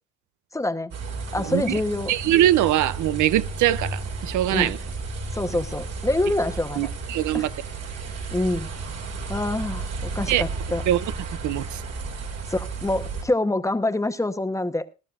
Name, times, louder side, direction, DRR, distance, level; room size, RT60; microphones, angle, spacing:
voice 1, 0.5-0.9 1.3-2.1 4.5-4.7 5.3-6.9 7.3-7.5 8.3-8.7 9.3-10.8 12.5-14.9, left 2 dB, 10° left, 1.0 m, -26 dB
sound 1, 0.9-13.2, right 3 dB, 55° right, 2.3 m, -33 dB
voice 2, 1.4-1.8 2.1-4.8 6.8-7.5 10.3-10.4 10.9-11.0 11.4-11.8, right 13 dB, 80° right, 0.6 m, -22 dB
20.0 x 12.0 x 2.5 m
cardioid pair, 105°, 30 cm